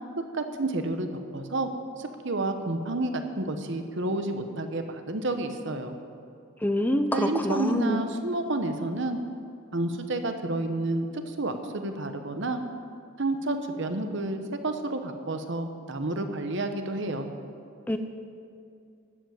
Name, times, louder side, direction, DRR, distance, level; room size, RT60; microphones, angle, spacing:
voice 1, 0.3-1.1 1.3-1.7 2.0-5.9 7.1-9.2 9.7-12.6 13.2-17.3, right 2 dB, 55° right, 7 dB, 1.0 m, -30 dB
voice 2, 6.6-8.0 17.9-18.0, left 1 dB, 10° left, 7 dB, 0.6 m, -26 dB
12.0 x 8.2 x 7.6 m, 2.5 s
head